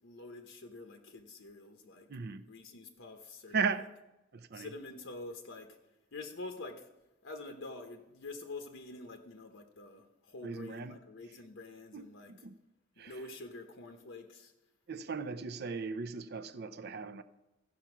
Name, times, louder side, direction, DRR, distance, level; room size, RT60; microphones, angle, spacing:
voice 1, 0.0-2.1 2.5-3.6 4.5-5.8 6.1-6.9 7.2-12.3 13.0-14.5, left 2 dB, 70° left, 0.9 m, -47 dB
voice 2, 2.1-2.4 3.5-3.9 4.3-4.7 10.4-11.0 11.9-12.6 13.0-13.2 14.9-17.2, right 5 dB, 55° right, 0.5 m, -37 dB
14.5 x 5.7 x 6.0 m
head